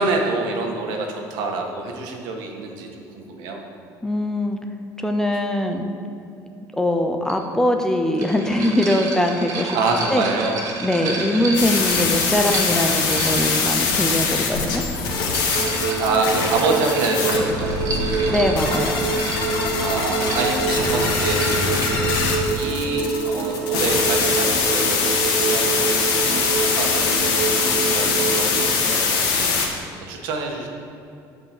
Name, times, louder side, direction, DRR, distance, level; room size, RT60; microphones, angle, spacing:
voice 1, 0.0-3.6 9.7-10.6 11.0-11.5 16.0-18.4 19.8-21.9 22.5-30.7, right 3 dB, 85° right, 1 dB, 1.7 m, -27 dB
voice 2, 4.0-4.6 5.0-5.9 6.7-9.8 10.1-10.2 10.8-14.8 18.3-19.0, left 1 dB, 5° left, 4 dB, 0.7 m, -22 dB
sound 1, 7.3-7.4 8.1-14.0 14.9-21.9, right 3 dB, 50° right, 2.2 m, -32 dB
sound 2, 11.5-29.7, left 4 dB, 75° left, 2.1 m, -23 dB
sound 3, 15.5-28.7, right 4 dB, 65° right, 1.3 m, -26 dB
11.5 x 5.5 x 7.6 m, 2.6 s
cardioid pair, 140°, 7 cm